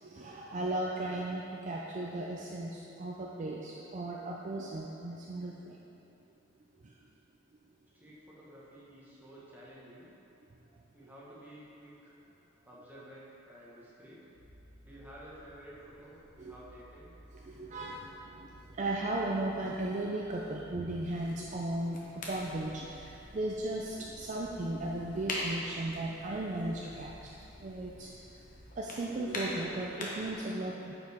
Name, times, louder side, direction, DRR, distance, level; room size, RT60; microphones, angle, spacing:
voice 1, 0.0-5.8 16.4-16.5 17.3-18.5 18.8-27.3 27.6-28.1 28.8-30.9, right 2 dB, 35° right, -3 dB, 0.4 m, -36 dB
voice 2, 7.9-10.1 10.9-12.1 12.6-14.2 14.8-17.1, right 1 dB, 10° right, -8 dB, 1.2 m, -52 dB
sound 1, 14.3-28.7, equal, 85° left, 1.1 m, -57 dB
sound 2, 21.1-30.4, left 1 dB, 40° left, 1.0 m, -44 dB
8.7 x 5.2 x 3.5 m, 3.0 s
head